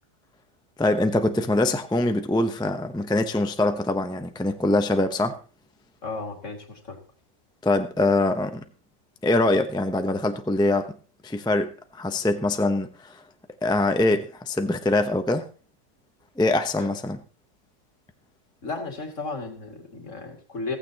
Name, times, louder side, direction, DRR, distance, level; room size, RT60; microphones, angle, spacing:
voice 1, 0.8-5.4 7.6-8.6 9.2-10.9 11.2-13.2 13.6-15.4 16.4-17.2, left 2 dB, 5° left, 0.3 m, -23 dB
voice 2, 6.0-7.0 16.8-16.9 18.6-20.8, left 3 dB, 45° left, 2.7 m, -34 dB
15.0 x 15.0 x 2.9 m
omnidirectional pair, 1.8 m